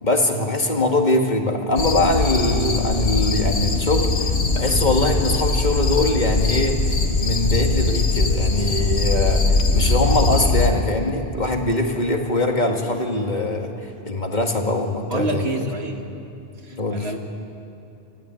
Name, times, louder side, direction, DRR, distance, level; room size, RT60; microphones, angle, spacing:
voice 1, 0.0-6.8 7.2-13.7 14.1-15.4 16.7-17.1, left 2 dB, 45° left, 2 dB, 2.2 m, -22 dB
sound 1, 1.8-10.7, left 3 dB, 85° left, 1.6 m, -21 dB
voice 2, 15.1-16.1 16.6-17.2, right 2 dB, 80° right, 3 dB, 2.1 m, -27 dB
29.5 x 14.5 x 9.2 m, 2.8 s
omnidirectional pair, 1.0 m